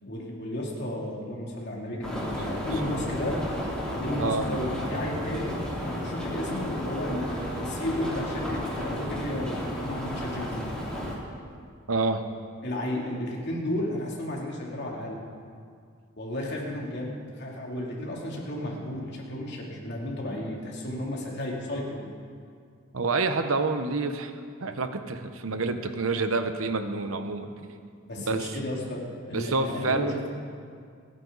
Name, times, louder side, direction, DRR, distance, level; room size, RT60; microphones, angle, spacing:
voice 1, 0.0-3.4 4.0-5.6 5.8-10.7 12.6-15.2 16.2-22.1 28.0-30.3, left 1 dB, 55° left, -3 dB, 3.1 m, -33 dB
sound 1, 2.0-11.1, left 1 dB, 5° left, 3.2 m, -32 dB
voice 2, 11.9-12.2 22.9-24.3 24.6-27.7 28.2-28.6 29.3-30.2, right 3 dB, 80° right, 8 dB, 1.1 m, -28 dB
29.0 x 9.8 x 4.1 m, 2.2 s
head